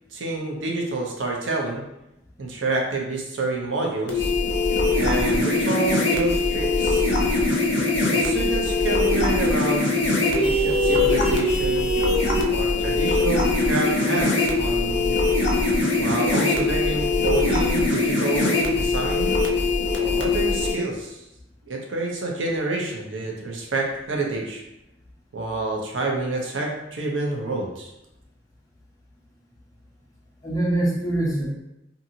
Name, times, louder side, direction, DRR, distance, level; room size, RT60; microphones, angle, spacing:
voice 1, 0.1-1.8 2.4-4.3 4.9-7.1 8.1-9.8 10.3-11.9 12.5-15.2 16.0-19.3 19.9-21.2 21.6-24.6 25.3-27.9, right 3 dB, 85° right, -1 dB, 0.6 m, -28 dB
sound 1, 4.1-20.7, left 3 dB, 65° left, 0.5 m, -22 dB
voice 2, 30.4-31.5, right 1 dB, 20° left, -5 dB, 0.7 m, -24 dB
2.7 x 2.6 x 2.7 m, 0.89 s
head